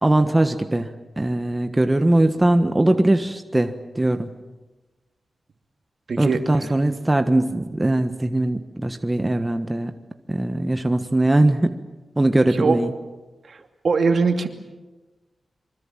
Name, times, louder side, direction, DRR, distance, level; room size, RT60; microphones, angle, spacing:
voice 1, 0.0-4.3 6.2-9.9 10.3-11.8 12.2-12.9, right 1 dB, 20° right, 7 dB, 1.4 m, -20 dB
voice 2, 6.1-6.4 12.5-12.8 13.5-13.6 13.8-14.5, right 4 dB, 65° right, 5 dB, 2.6 m, -20 dB
26.0 x 24.5 x 7.5 m, 1.2 s
cardioid pair, 70°, 0 cm